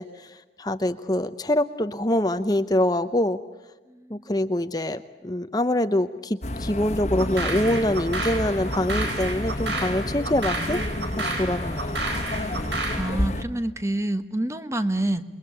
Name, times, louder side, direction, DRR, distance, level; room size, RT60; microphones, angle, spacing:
voice 1, 0.0-3.4 4.1-10.8 11.2-12.3, left 1 dB, 20° left, 10 dB, 0.8 m, -25 dB
voice 2, 3.9-4.3 12.9-15.2, right 1 dB, 15° right, 10 dB, 1.3 m, -28 dB
sound 1, 6.4-13.4, left 1 dB, 40° left, 1.4 m, -30 dB
sound 2, 7.2-13.1, right 2 dB, 85° right, 5.5 m, -31 dB
29.0 x 22.5 x 8.6 m, 1.2 s
head